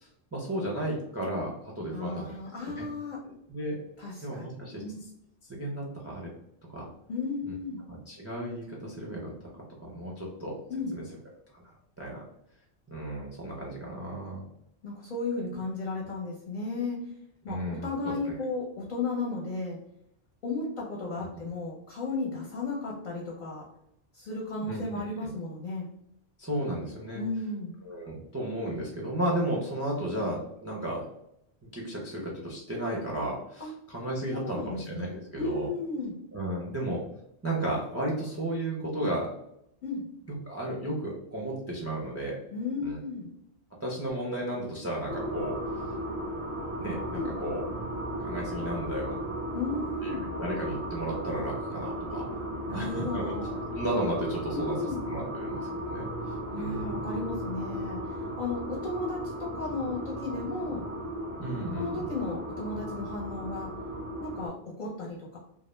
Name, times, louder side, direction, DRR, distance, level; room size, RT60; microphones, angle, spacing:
voice 1, 0.0-2.9 3.5-3.8 4.2-4.8 5.4-6.3 6.7-6.9 7.4-7.5 7.9-9.5 9.8-10.6 10.9-11.0 12.0-12.2 12.9-14.4 17.5-18.1 21.2-21.3 24.6-24.8 26.4-27.2 27.8-31.0 31.7-35.7 36.3-37.0 37.4-39.3 40.5-42.4 42.8-43.0 43.8-45.6 46.8-47.6 48.2-49.2 50.0-52.3 52.7-53.3 53.7-54.8 55.1-56.1 56.6-57.0 61.4-62.1, right 1 dB, 25° right, -3 dB, 0.3 m, -34 dB
voice 2, 1.9-3.2 4.0-5.0 7.1-7.8 10.7-11.0 14.8-17.0 17.4-19.8 20.4-23.6 24.1-25.9 27.1-27.7 33.6-33.7 34.3-36.2 39.8-40.1 42.5-43.3 47.1-47.3 49.5-50.3 52.7-53.6 54.5-55.0 56.5-60.8 61.7-63.7 64.2-65.4, left 3 dB, 55° left, -3 dB, 0.6 m, -34 dB
sound 1, 45.1-64.5, equal, 15° left, 0.7 m, -35 dB
2.3 x 2.0 x 3.1 m, 0.76 s
omnidirectional pair, 1.1 m